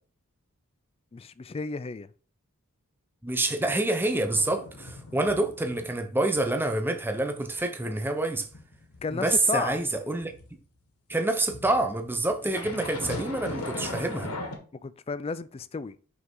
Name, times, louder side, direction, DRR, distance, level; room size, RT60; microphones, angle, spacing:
voice 1, 1.1-2.1 9.0-9.8 12.4-12.6 14.8-15.9, left 4 dB, 25° left, 0.3 m, -33 dB
voice 2, 3.2-8.5 9.1-10.3 11.1-14.3, right 2 dB, 10° right, 0.8 m, -27 dB
sound 1, 4.1-6.0 6.3-6.6 6.9-10.5 11.5-14.6, left 2 dB, 75° left, 1.7 m, -39 dB
5.6 x 5.6 x 3.9 m
head